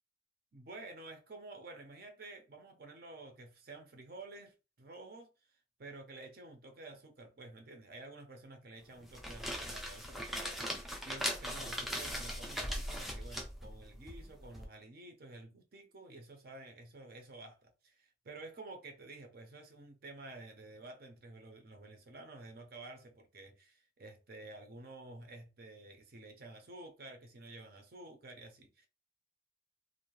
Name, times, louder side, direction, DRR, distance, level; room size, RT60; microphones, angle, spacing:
voice 1, 0.5-5.3 5.8-28.9, right 2 dB, 55° right, 0.6 m, -51 dB
sound 1, 9.0-14.6, equal, ahead, 0.3 m, -40 dB
2.6 x 2.1 x 3.0 m
head